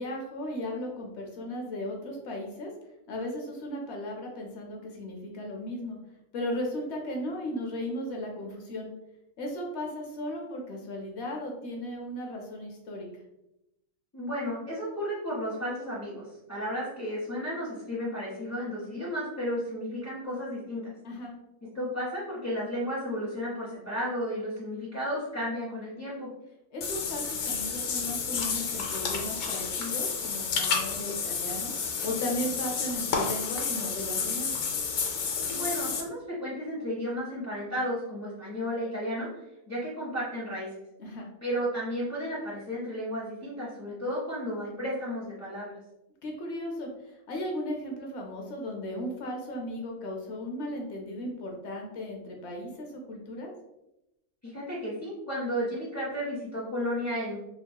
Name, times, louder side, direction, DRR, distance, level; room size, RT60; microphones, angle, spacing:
voice 1, 0.0-2.7 3.1-6.0 6.3-8.9 9.4-13.1 21.0-21.3 26.7-34.6 41.0-41.3 46.2-46.9 47.3-53.5, left 1 dB, 65° left, 1 dB, 0.7 m, -36 dB
voice 2, 14.1-16.2 16.5-20.9 21.7-26.3 35.5-39.3 39.7-40.7 41.4-45.8 54.4-57.4, equal, 20° left, -9 dB, 0.4 m, -33 dB
Water / Bathtub (filling or washing), 26.8-36.0, left 5 dB, 80° left, 1.1 m, -31 dB
3.0 x 2.7 x 2.2 m, 0.89 s
omnidirectional pair, 1.6 m